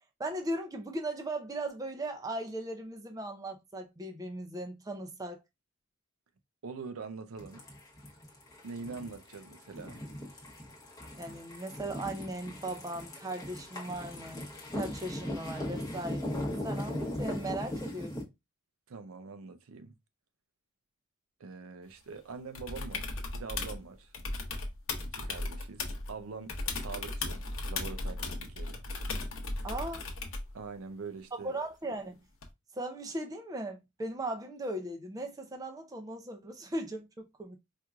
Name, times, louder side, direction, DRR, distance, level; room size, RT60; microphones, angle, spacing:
voice 1, 0.2-5.4 11.2-14.5 14.7-18.2 29.6-30.0 31.4-32.2 32.7-37.6, right 1 dB, 15° right, 0.4 m, -38 dB
voice 2, 6.6-7.6 8.6-10.0 18.9-20.0 21.4-24.1 25.1-28.8 30.5-31.5, right 4 dB, 70° right, 0.5 m, -44 dB
sound 1, 7.4-18.2, left 1 dB, 15° left, 0.9 m, -39 dB
sound 2, 22.5-23.8 24.1-26.1 26.5-30.5 32.4-32.5, left 2 dB, 60° left, 0.8 m, -36 dB
4.4 x 2.5 x 2.3 m
head